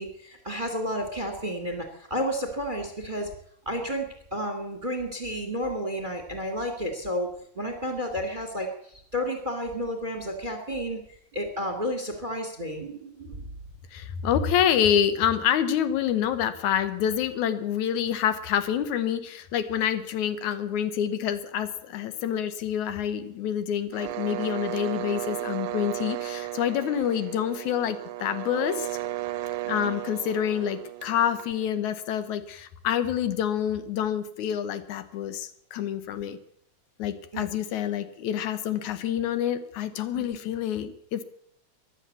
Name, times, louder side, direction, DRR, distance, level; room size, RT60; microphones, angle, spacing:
voice 1, 0.0-3.3 3.6-7.3 7.5-13.5 24.0-24.1 29.6-29.9 37.3-37.5 40.1-40.4, equal, 20° right, 6 dB, 1.6 m, -32 dB
voice 2, 13.9-28.9 29.7-36.4 37.0-41.2, left 9 dB, 75° left, 11 dB, 2.4 m, -27 dB
sound 1, 23.9-31.7, right 16 dB, 85° right, 2.3 m, -34 dB
14.0 x 11.5 x 8.3 m, 0.68 s
omnidirectional pair, 3.4 m